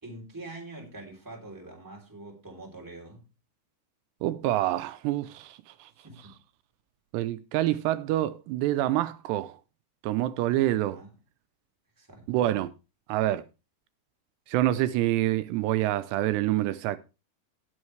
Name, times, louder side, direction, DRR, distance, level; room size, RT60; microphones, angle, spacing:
voice 1, 0.0-3.2 6.0-6.4 10.7-11.1 12.0-12.3, right 2 dB, 5° right, 2.5 m, -44 dB
voice 2, 4.2-5.9 7.1-9.6 10.0-11.0 12.3-12.7 13.1-13.4 14.5-17.0, right 14 dB, 85° right, 2.7 m, -27 dB
18.5 x 6.4 x 3.2 m
omnidirectional pair, 4.9 m